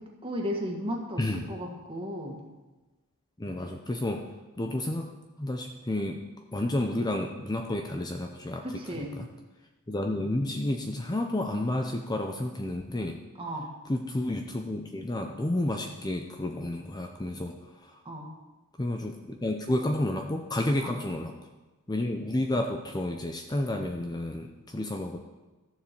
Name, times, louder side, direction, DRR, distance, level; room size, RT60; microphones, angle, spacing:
voice 1, 0.0-1.2 1.5-2.4 8.6-9.2 13.4-13.7 18.1-18.3 20.8-21.0, equal, 25° right, 0 dB, 1.9 m, -35 dB
voice 2, 1.2-1.5 3.4-4.3 4.6-5.1 5.4-6.2 6.5-9.3 9.9-13.2 13.9-18.0 18.8-21.3 21.9-25.2, left 1 dB, 20° left, 3 dB, 0.7 m, -31 dB
13.0 x 7.3 x 6.9 m, 1.2 s
head